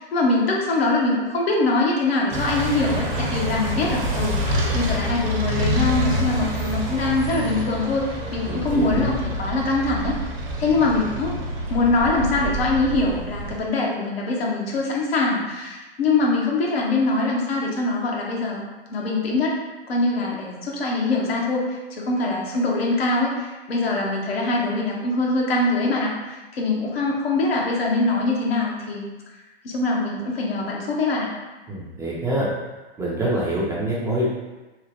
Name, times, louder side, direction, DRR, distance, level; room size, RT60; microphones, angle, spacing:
voice 1, 0.0-10.2 10.6-11.3 11.7-19.6 19.9-29.0 29.6-31.3, left 2 dB, 80° left, -2 dB, 0.8 m, -23 dB
sound 1, 2.3-13.6, equal, 50° right, 0.7 m, -27 dB
voice 2, 8.5-9.1 31.7-32.5 33.0-34.3, right 1 dB, 10° right, -6 dB, 0.3 m, -25 dB
3.1 x 2.1 x 2.7 m, 1.1 s
hypercardioid pair, 110°, 30 cm